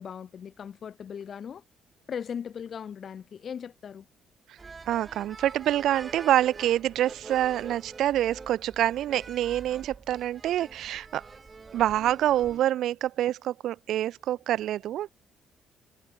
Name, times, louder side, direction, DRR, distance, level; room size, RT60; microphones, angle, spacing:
voice 1, 0.0-1.6 2.1-4.1, left 7 dB, 55° left, 0.7 m, -38 dB
sound 1, 4.6-12.6, right 4 dB, 30° right, 0.9 m, -45 dB
voice 2, 4.9-11.2 11.7-15.1, right 12 dB, 80° right, 0.4 m, -26 dB
cardioid pair, 90°, 0 cm